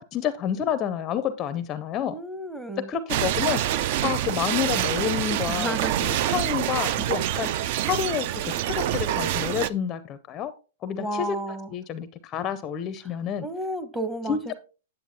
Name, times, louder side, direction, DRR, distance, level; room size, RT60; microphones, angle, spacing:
voice 1, 0.0-2.2 2.9-10.5 10.8-13.5 14.3-14.5, left 9 dB, 25° left, 0.5 m, -29 dB
voice 2, 2.0-2.9 5.5-6.0 11.0-11.7 13.4-14.5, right 1 dB, 5° right, 0.8 m, -32 dB
sound 1, 3.1-9.7, right 12 dB, 45° right, 0.4 m, -26 dB
9.1 x 7.8 x 2.8 m
hypercardioid pair, 150°, 0 cm